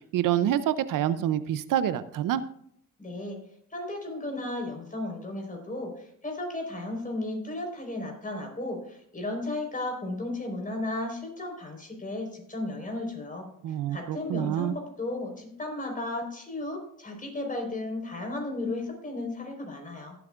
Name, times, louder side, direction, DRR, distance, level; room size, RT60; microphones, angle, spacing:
voice 1, 0.1-2.4 13.6-14.7, right 11 dB, 70° right, 14 dB, 0.6 m, -27 dB
voice 2, 3.0-3.4 3.7-20.1, left 2 dB, 25° left, 1 dB, 4.4 m, -34 dB
17.0 x 8.2 x 2.5 m, 0.68 s
cardioid pair, 90°, 34 cm